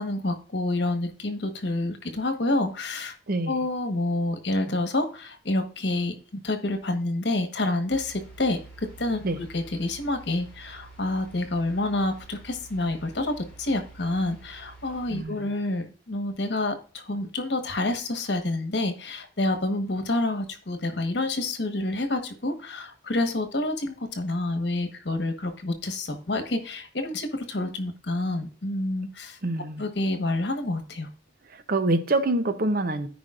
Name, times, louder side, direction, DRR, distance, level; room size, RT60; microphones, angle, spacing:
voice 1, 0.0-3.1 3.4-6.1 6.4-13.3 13.6-29.4 29.8-31.1, left 2 dB, 65° left, 1.3 m, -28 dB
voice 2, 3.3-3.6 9.2-9.4 15.1-15.6 29.4-29.8 31.5-33.1, right 2 dB, 50° right, 0.7 m, -26 dB
sound 1, 7.9-15.2, right 3 dB, 5° left, 4.0 m, -48 dB
13.5 x 5.1 x 2.5 m
head